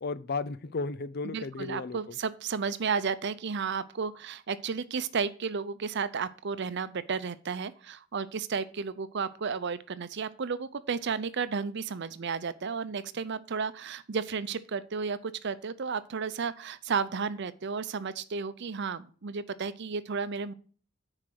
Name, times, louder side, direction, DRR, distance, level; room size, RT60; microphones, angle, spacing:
voice 1, 0.0-2.2, left 3 dB, 50° left, 0.6 m, -34 dB
voice 2, 1.2-20.5, right 5 dB, 60° right, 0.6 m, -33 dB
9.9 x 4.9 x 5.9 m
head